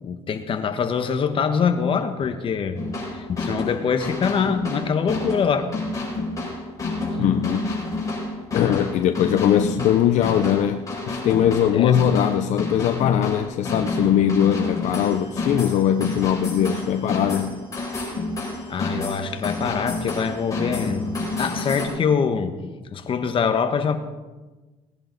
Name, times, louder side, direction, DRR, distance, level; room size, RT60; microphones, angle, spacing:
voice 1, 0.0-2.8 3.1-5.7 11.7-11.9 18.7-21.1 21.4-22.6 22.9-24.0, left 6 dB, 45° left, 8 dB, 1.2 m, -24 dB
sound 1, 2.8-21.9, left 2 dB, 25° left, 4.7 m, -29 dB
voice 2, 7.2-7.8 8.5-17.6, left 10 dB, 65° left, 8 dB, 0.6 m, -21 dB
18.5 x 10.5 x 4.0 m, 1.2 s
cardioid pair, 110°, 13 cm